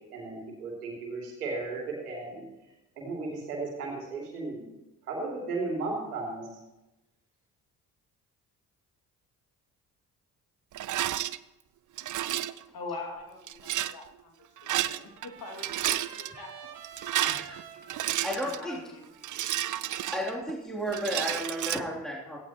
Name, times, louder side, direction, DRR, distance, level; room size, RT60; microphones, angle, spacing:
voice 1, 0.1-2.4 3.0-4.7 5.0-6.5, right 3 dB, 85° right, -1 dB, 2.9 m, -35 dB
Rattle, 10.7-11.4 12.0-12.6 13.5-13.9 14.6-15.3 15.5-16.3 16.8-18.6 19.2-20.5 20.9-21.8, right 13 dB, 45° right, 0.6 m, -31 dB
voice 2, 12.7-16.7 18.0-19.1, left 3 dB, 50° left, 2 dB, 2.7 m, -43 dB
Trumpet, 14.4-20.6, right 8 dB, 65° right, 1.7 m, -50 dB
voice 3, 17.2-17.6 18.2-18.8 20.1-22.4, equal, ahead, -4 dB, 3.4 m, -33 dB
17.0 x 15.0 x 3.1 m, 1.0 s
hypercardioid pair, 40°, 45 cm